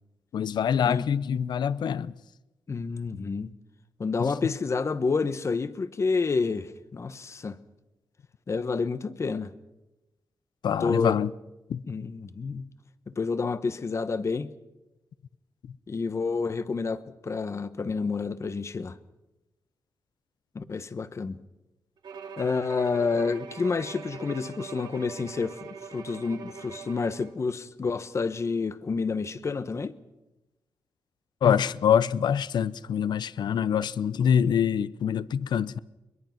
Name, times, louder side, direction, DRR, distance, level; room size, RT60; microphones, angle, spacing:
voice 1, 0.3-2.1 3.1-3.2 4.2-4.3 10.6-11.3 11.7-11.8 31.4-35.8, left 8 dB, 70° left, 0.6 m, -25 dB
voice 2, 2.7-3.5 4.0-7.6 8.5-9.5 10.8-11.2 11.9-12.7 13.1-14.5 15.9-19.0 20.5-21.4 22.4-29.9, left 4 dB, 40° left, 1.1 m, -29 dB
Bowed string instrument, 22.0-27.4, right 5 dB, 75° right, 3.0 m, -42 dB
22.5 x 22.0 x 5.9 m
cardioid pair, 105°, 8 cm